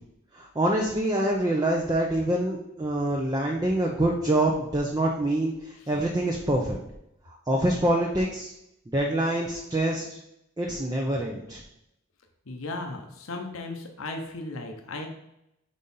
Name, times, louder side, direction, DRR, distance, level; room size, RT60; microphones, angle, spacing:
voice 1, 0.3-6.8 7.5-8.5 8.9-10.2 10.6-11.6, right 1 dB, 20° right, 0 dB, 0.6 m, -26 dB
voice 2, 12.5-15.1, left 2 dB, 80° left, 4 dB, 0.8 m, -36 dB
5.0 x 4.1 x 5.4 m, 0.83 s
head